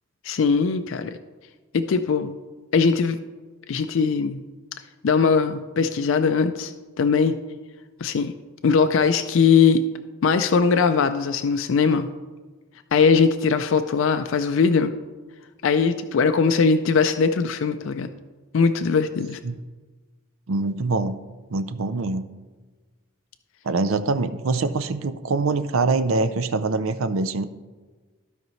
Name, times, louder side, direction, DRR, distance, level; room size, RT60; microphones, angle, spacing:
voice 1, 0.2-1.2 1.7-2.3 2.7-3.2 3.7-4.4 5.0-7.4 8.0-8.3 8.6-9.8 10.2-12.1 12.9-14.9 15.6-18.1 18.5-19.4, left 5 dB, 65° left, 8 dB, 0.4 m, -20 dB
voice 2, 20.5-21.2 21.5-22.3 23.6-27.4, right 3 dB, 75° right, 12 dB, 0.5 m, -24 dB
15.0 x 5.2 x 3.1 m, 1.3 s
head